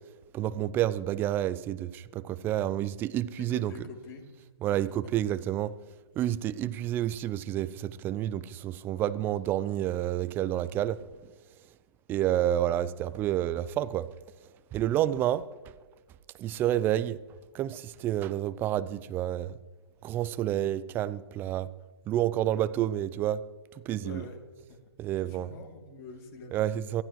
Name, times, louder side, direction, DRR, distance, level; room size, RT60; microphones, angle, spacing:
voice 1, 0.3-3.7 4.6-5.8 6.2-11.0 12.1-14.1 14.7-15.5 16.4-17.2 17.5-19.6 20.0-21.7 22.1-23.5 23.9-24.2 25.0-25.5 26.5-27.0, right 12 dB, 15° right, 0.4 m, -29 dB
voice 2, 3.4-4.2 24.0-24.4 24.7-24.8 25.2-26.7, left 4 dB, 35° left, 2.9 m, -45 dB
23.5 x 15.0 x 3.1 m
figure-of-eight pair, 130°, 14 cm